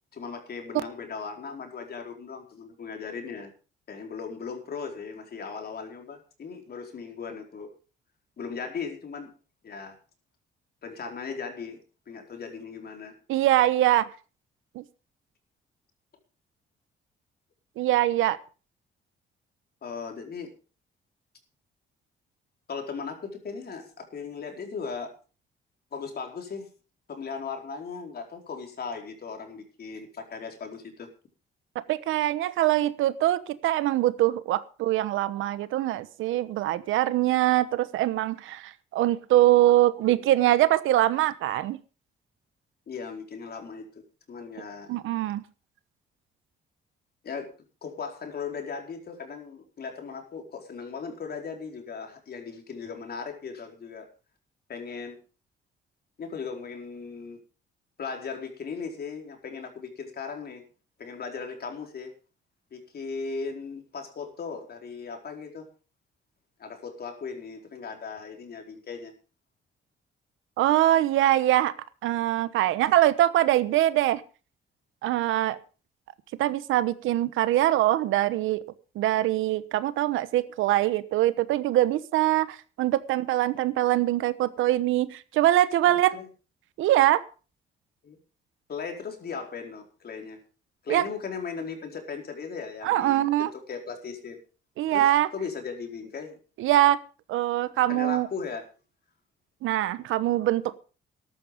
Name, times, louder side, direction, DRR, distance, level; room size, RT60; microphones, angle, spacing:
voice 1, 0.1-3.5 3.9-7.7 8.4-9.3 9.6-10.0 10.8-11.8 12.1-13.2 19.8-20.5 22.7-25.1 25.9-26.7 27.1-31.1 42.9-44.0 44.3-44.9 47.2-47.5 47.8-54.1 54.7-55.2 56.2-57.4 58.0-60.6 61.0-62.1 62.7-65.7 66.6-69.1 85.9-86.3 88.0-88.2 88.7-90.4 90.8-94.4 94.9-96.4 97.9-98.6, left 5 dB, 50° left, 4 dB, 4.5 m, -37 dB
voice 2, 13.3-14.1 14.7-14.8 17.8-18.4 31.7-41.8 44.9-45.4 70.6-71.7 72.0-74.2 75.0-75.6 76.4-78.6 78.9-86.1 86.8-87.2 90.9-91.0 92.8-93.5 94.8-95.3 96.6-97.0 97.3-98.3 99.6-100.8, right 14 dB, 90° right, 15 dB, 1.1 m, -23 dB
14.0 x 12.0 x 5.2 m, 0.36 s
cardioid pair, 90°, 20 cm